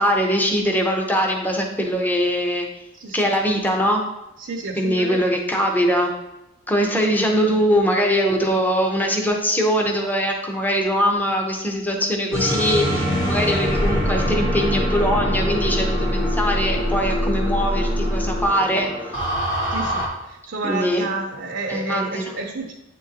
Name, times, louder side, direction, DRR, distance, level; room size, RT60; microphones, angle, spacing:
voice 1, 0.0-2.7 3.1-4.0 4.8-6.1 6.7-18.9 20.6-21.1 21.7-22.3, equal, 10° left, 1 dB, 0.7 m, -22 dB
voice 2, 2.9-3.3 4.4-5.3 6.9-7.5 19.7-22.7, right 3 dB, 65° right, 0 dB, 0.6 m, -31 dB
sound 1, 12.3-20.1, equal, 85° left, 1.7 m, -23 dB
9.1 x 3.7 x 2.8 m, 0.90 s
head